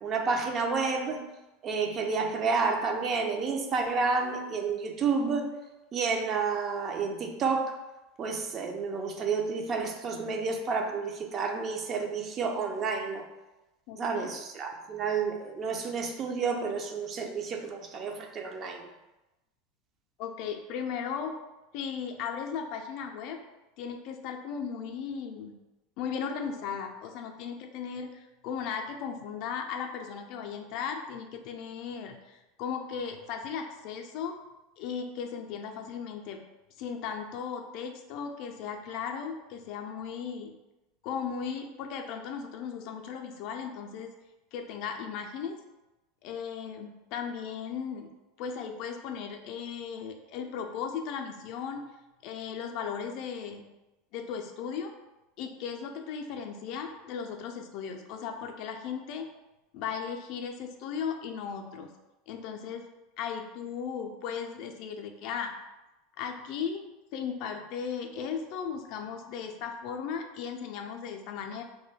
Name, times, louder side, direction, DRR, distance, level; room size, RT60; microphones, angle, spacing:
voice 1, 0.0-1.2 1.6-5.5 5.9-7.8 8.2-13.2 14.0-18.9, right 4 dB, 40° right, 3 dB, 0.4 m, -30 dB
voice 2, 13.9-14.3 20.2-21.3 21.7-23.4 23.8-25.6 26.0-34.3 34.8-36.4 36.8-40.5 41.0-44.1 44.5-45.6 46.2-48.1 48.4-51.8 52.2-53.7 54.1-54.9 55.4-59.3 59.7-61.9 62.3-62.8 63.2-65.5 66.2-66.8 67.1-71.6, left 7 dB, 60° left, 4 dB, 0.3 m, -36 dB
2.2 x 2.2 x 3.2 m, 1.0 s
hypercardioid pair, 95°, 0 cm